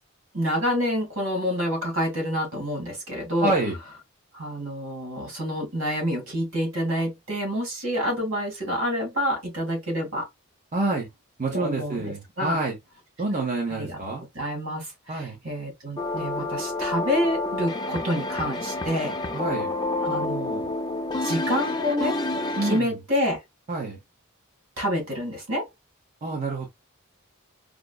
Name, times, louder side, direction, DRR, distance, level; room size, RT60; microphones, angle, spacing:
voice 1, 0.3-3.5 4.3-10.3 11.5-12.6 13.7-14.0 14.3-19.2 20.0-20.7 21.2-22.2 22.6-23.4 24.8-25.7, equal, 70° right, 2.1 m, -28 dB
voice 2, 3.4-3.8 10.7-11.1 11.4-12.8 13.2-14.2 15.1-15.4 19.3-19.7 22.6-23.0 23.7-24.0 26.2-26.7, right 2 dB, 35° right, 0.8 m, -27 dB
sound 1, 16.0-22.8, left 2 dB, 20° left, 0.5 m, -29 dB
5.0 x 2.0 x 2.3 m
head